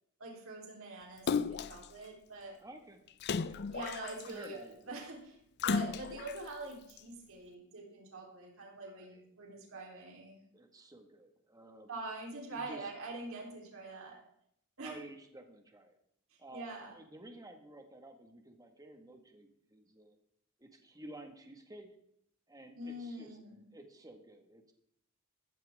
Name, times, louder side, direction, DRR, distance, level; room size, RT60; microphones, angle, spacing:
voice 1, 0.2-2.6 3.7-10.4 11.9-14.2 14.8-14.9 16.5-16.9 22.7-23.6, right 2 dB, 65° right, -1 dB, 3.8 m, -44 dB
Splash splatter, 1.3-1.9 3.2-4.4 5.6-6.4 7.0-7.1, left 5 dB, 50° left, 0.5 m, -34 dB
voice 2, 2.6-3.0 3.4-3.6 4.3-4.7 8.9-9.2 10.5-11.9 12.5-12.9 14.8-16.0 16.4-20.2 20.6-22.0 22.5-23.4 23.7-24.7, right 1 dB, 15° right, 5 dB, 1.7 m, -52 dB
14.5 x 14.0 x 3.7 m, 0.73 s
head